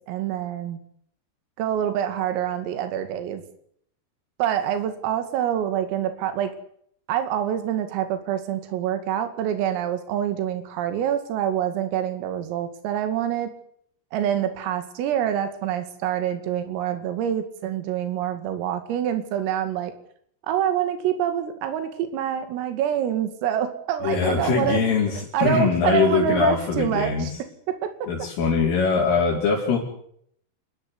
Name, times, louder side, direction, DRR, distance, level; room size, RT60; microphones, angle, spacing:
voice 1, 0.1-0.8 1.6-3.4 4.4-6.5 7.1-13.5 14.1-19.9 20.5-24.8 25.3-27.3 27.7-27.8, right 10 dB, 85° right, 9 dB, 4.9 m, -26 dB
voice 2, 24.0-27.3 28.1-29.8, left 5 dB, 70° left, -2 dB, 7.2 m, -22 dB
29.0 x 14.5 x 9.8 m, 0.67 s
omnidirectional pair, 5.9 m